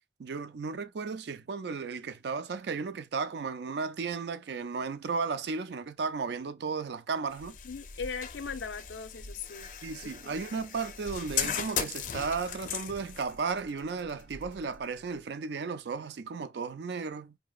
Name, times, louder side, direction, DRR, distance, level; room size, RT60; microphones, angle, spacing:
voice 1, 0.2-7.6 9.8-17.4, right 5 dB, 70° right, 0.4 m, -34 dB
sound 1, 7.3-15.2, left 8 dB, 45° left, 0.5 m, -38 dB
voice 2, 7.6-9.7 10.0-10.4, left 5 dB, 85° left, 0.6 m, -39 dB
4.8 x 2.7 x 2.3 m
head